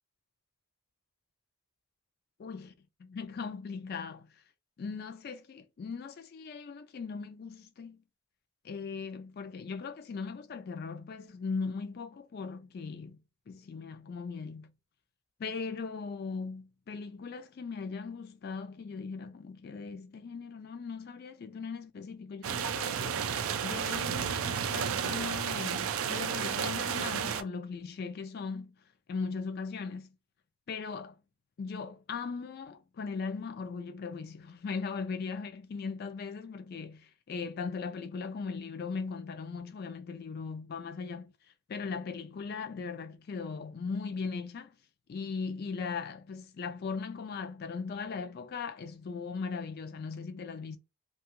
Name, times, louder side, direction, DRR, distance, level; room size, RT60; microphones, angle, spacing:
voice 1, 2.4-2.7 3.0-4.3 4.8-8.0 8.6-13.2 13.5-14.7 15.4-28.8 29.1-30.1 30.7-31.1 31.6-41.3 41.7-44.7 45.1-50.8, left 5 dB, 45° left, 0.3 m, -39 dB
sound 1, 22.4-27.4, right 7 dB, 70° right, 0.4 m, -32 dB
2.8 x 2.3 x 2.9 m
head